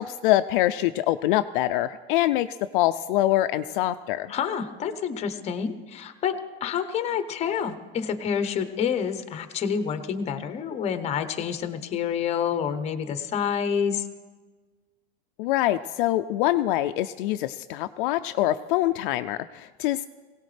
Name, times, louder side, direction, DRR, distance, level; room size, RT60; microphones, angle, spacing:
voice 1, 0.0-2.5 2.7-4.3 15.4-20.1, left 14 dB, 60° left, 9 dB, 0.5 m, -24 dB
voice 2, 4.3-14.0, left 7 dB, 20° left, 9 dB, 0.8 m, -28 dB
22.0 x 17.5 x 3.3 m, 1.4 s
supercardioid pair, 160°, 30 cm